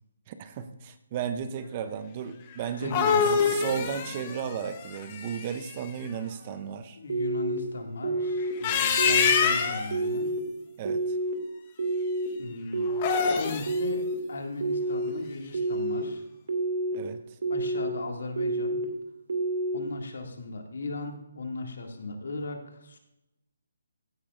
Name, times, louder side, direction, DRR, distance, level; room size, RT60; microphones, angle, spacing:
voice 1, 0.3-7.0 10.8-11.2 16.9-17.4, right 7 dB, 20° right, 11 dB, 0.5 m, -34 dB
sound 1, 2.6-5.7 8.4-9.9 12.9-13.8, left 6 dB, 20° left, 0.9 m, -25 dB
voice 2, 2.8-3.4 7.0-10.3 12.4-16.2 17.5-18.8 19.7-23.0, left 3 dB, 65° left, 3 dB, 2.1 m, -37 dB
sound 2, 7.1-7.6 8.0-8.5 9.0-9.4 9.9-10.4 10.8-11.3 11.8-12.3 12.7-13.2 13.7-14.1 14.6-15.1 15.5-16.0 16.5-17.0 17.4-17.9 18.4-18.9 19.3-19.8, right 2 dB, 55° right, 2.2 m, -28 dB
16.0 x 9.6 x 2.5 m, 0.90 s
hypercardioid pair, 175°, 0 cm